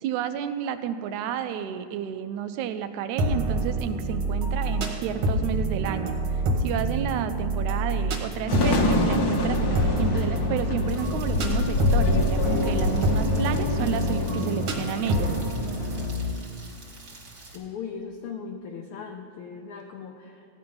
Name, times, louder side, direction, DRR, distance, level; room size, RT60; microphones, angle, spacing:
voice 1, 0.0-6.2 6.6-15.3, right 9 dB, 90° right, 10 dB, 2.0 m, -31 dB
sound 1, 3.2-16.3, right 1 dB, 60° right, 2.2 m, -27 dB
sound 2, 8.5-16.1, left 2 dB, 60° left, 1.0 m, -26 dB
Rain, 10.9-17.6, right 2 dB, 35° right, 1.9 m, -47 dB
voice 2, 17.5-20.5, left 6 dB, 85° left, 3 dB, 1.2 m, -38 dB
15.0 x 9.5 x 5.5 m, 2.6 s
omnidirectional pair, 3.4 m